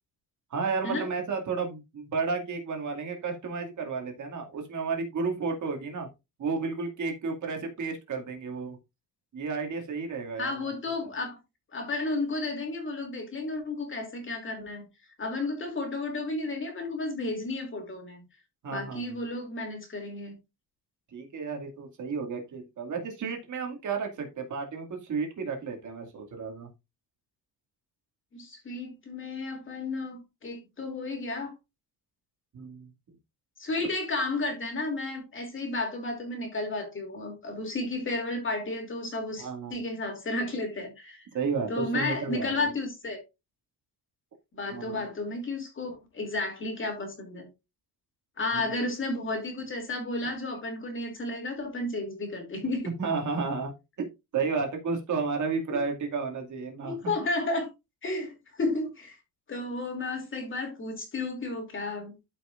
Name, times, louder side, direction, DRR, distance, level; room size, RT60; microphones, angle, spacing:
voice 1, 0.5-6.1 6.4-8.8 9.3-10.7 18.6-19.2 21.1-26.7 32.5-32.9 39.4-39.8 41.3-42.6 44.7-45.0 53.0-54.1 54.3-57.0, right 4 dB, 50° right, 2.4 m, -32 dB
voice 2, 10.4-11.4 11.7-14.9 15.2-18.2 18.7-20.4 28.3-31.5 33.6-41.3 41.7-43.2 44.5-47.5 48.4-52.9 56.8-57.7 58.0-59.2 59.5-62.1, left 2 dB, 30° left, 2.9 m, -32 dB
13.0 x 5.7 x 2.5 m
cardioid pair, 150°, 40 cm